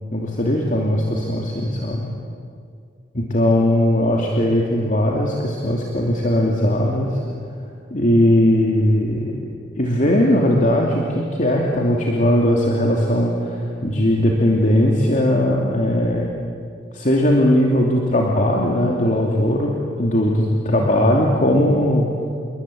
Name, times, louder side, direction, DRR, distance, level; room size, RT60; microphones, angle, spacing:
voice 1, 0.1-2.0 3.1-7.2 7.9-9.4 9.8-16.3 16.9-19.7 20.0-22.1, left 1 dB, 45° left, -1 dB, 2.8 m, -18 dB
29.0 x 23.0 x 8.7 m, 2.2 s
head